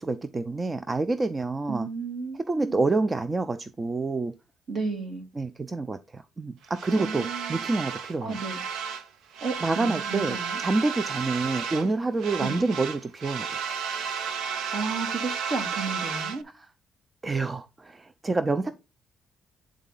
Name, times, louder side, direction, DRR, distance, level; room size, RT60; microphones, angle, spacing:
voice 1, 0.0-1.9 2.5-4.3 5.4-8.4 9.6-13.6 16.5-16.7 17.2-18.7, right 3 dB, 25° right, 0.5 m, -28 dB
voice 2, 1.7-2.8 4.7-5.3 7.0-7.6 8.2-8.6 9.4-10.6 12.4-12.6 14.7-16.4, right 4 dB, 60° right, 2.2 m, -33 dB
sound 1, 6.7-9.1 9.3-11.9 12.2-16.4, right 6 dB, 85° right, 0.7 m, -33 dB
9.0 x 3.7 x 3.9 m
cardioid pair, 90°, 0 cm